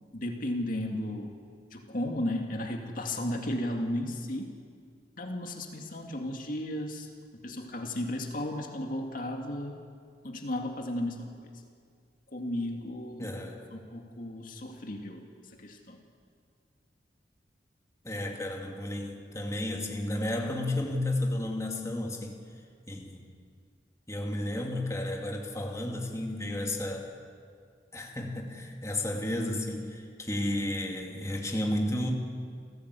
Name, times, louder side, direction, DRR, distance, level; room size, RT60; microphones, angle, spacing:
voice 1, 0.1-1.3 1.7-4.5 5.2-7.1 7.4-9.8 10.2-11.5 12.3-13.4 13.7-15.3 15.6-16.0, left 1 dB, 50° left, 2 dB, 2.2 m, -34 dB
voice 2, 13.2-13.6 18.0-22.4 22.9-23.2 24.1-27.1 27.9-32.1, left 1 dB, 20° left, 1 dB, 2.5 m, -32 dB
29.0 x 16.0 x 8.3 m, 2.1 s
head